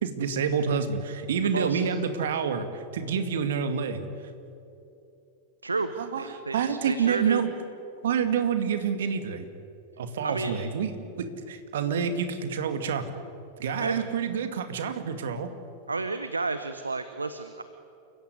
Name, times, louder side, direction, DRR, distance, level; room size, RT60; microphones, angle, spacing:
voice 1, 0.0-4.1 6.0-6.2 6.5-7.5 8.0-9.5 10.0-10.9 11.2-13.0 13.6-15.5, right 7 dB, 60° right, 8 dB, 2.2 m, -28 dB
voice 2, 1.4-1.8 5.6-7.4 10.2-10.6 13.8-14.1 15.9-17.6, right 3 dB, 80° right, 11 dB, 1.0 m, -31 dB
29.0 x 15.5 x 9.8 m, 2.8 s
figure-of-eight pair, 90°, 0 cm